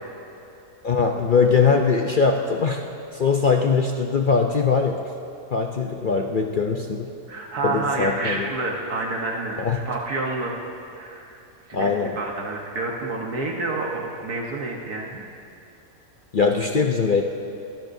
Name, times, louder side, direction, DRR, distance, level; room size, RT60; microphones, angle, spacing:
voice 1, 0.8-2.8 3.1-5.0 5.5-7.1 7.6-8.5 9.6-9.8 11.7-12.1 16.3-17.2, left 5 dB, 60° left, 2 dB, 0.5 m, -21 dB
voice 2, 7.3-9.6 9.8-10.6 10.9-11.3 11.7-15.2, right 2 dB, 75° right, 0 dB, 1.7 m, -28 dB
21.5 x 16.5 x 2.7 m, 2.8 s
omnidirectional pair, 1.7 m